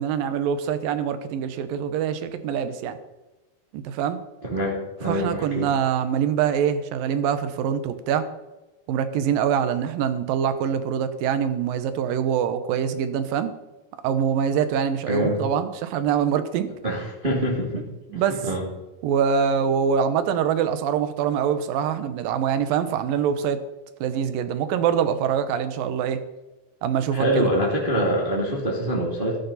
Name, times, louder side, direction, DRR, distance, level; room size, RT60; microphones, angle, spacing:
voice 1, 0.0-3.0 3.7-4.2 5.1-8.3 8.9-13.5 14.0-16.7 18.1-18.4 19.0-23.6 24.0-26.2 26.8-27.5, right 8 dB, 75° right, 11 dB, 2.6 m, -24 dB
voice 2, 4.4-5.7 15.1-15.4 16.8-17.8 18.1-18.7 27.1-29.4, equal, 15° right, -3 dB, 2.3 m, -25 dB
14.0 x 13.0 x 4.2 m, 1.1 s
omnidirectional pair, 4.4 m